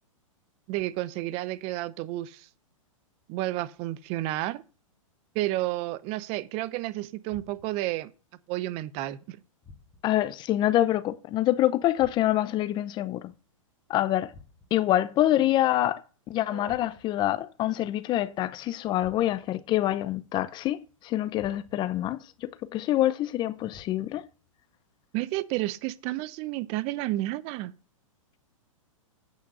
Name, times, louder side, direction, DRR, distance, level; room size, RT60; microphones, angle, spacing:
voice 1, 0.7-2.5 3.3-4.6 5.3-8.1 8.5-9.4 16.5-16.8 25.1-27.7, right 16 dB, 35° right, 0.7 m, -31 dB
sound 1, 7.3-7.9 9.6-10.3 12.0-12.6 14.3-14.9 16.6-17.3 19.0-19.6 21.4-22.0 23.7-24.3, left 4 dB, 10° left, 1.8 m, -53 dB
voice 2, 10.0-13.3 13.9-14.3 14.7-24.2, left 14 dB, 25° left, 0.6 m, -26 dB
8.5 x 6.0 x 5.3 m
hypercardioid pair, 120°, 17 cm